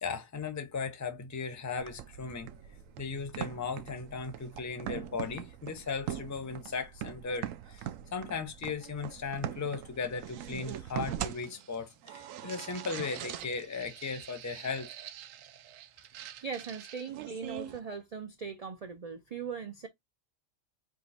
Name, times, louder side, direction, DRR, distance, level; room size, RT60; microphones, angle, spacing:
voice 1, 0.0-2.5 3.0-7.9 8.1-14.9, left 5 dB, 20° left, 0.5 m, -37 dB
sound 1, 1.8-17.8, right 11 dB, 80° right, 1.0 m, -42 dB
voice 2, 16.1-19.9, right 6 dB, 60° right, 0.4 m, -40 dB
3.7 x 2.9 x 4.1 m
omnidirectional pair, 1.3 m